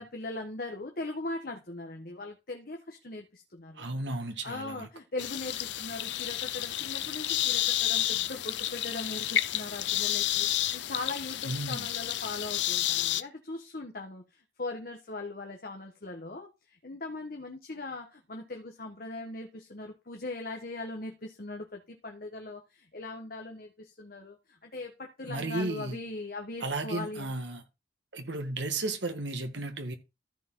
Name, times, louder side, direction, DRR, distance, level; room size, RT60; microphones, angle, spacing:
voice 1, 0.0-3.9 4.4-27.4, left 2 dB, 55° left, 1.3 m, -40 dB
voice 2, 3.8-4.9 11.4-11.9 25.3-26.0 26.6-27.6 28.1-30.0, right 2 dB, 80° right, 1.6 m, -34 dB
sound 1, 5.2-13.2, left 13 dB, 90° left, 0.5 m, -30 dB
14.0 x 4.8 x 3.8 m
head